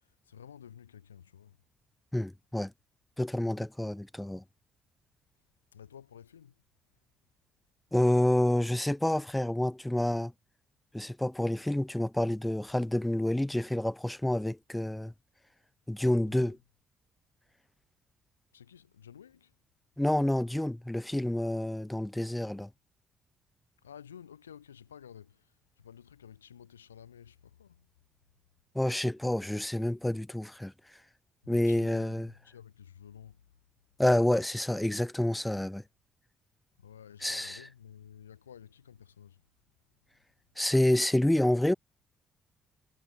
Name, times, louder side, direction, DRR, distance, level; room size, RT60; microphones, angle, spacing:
voice 1, 0.3-1.6 5.7-6.5 16.3-16.5 18.5-19.5 23.8-25.4 25.8-27.8 31.4-33.4 36.8-39.4, left 9 dB, 90° left, 5.8 m, -52 dB
voice 2, 2.1-2.7 3.2-4.4 7.9-10.3 10.9-15.1 15.9-16.6 20.0-22.7 28.7-30.7 31.5-32.3 34.0-35.8 37.2-37.7 40.6-41.7, left 1 dB, 10° left, 3.8 m, -28 dB
hypercardioid pair, 45°, 0 cm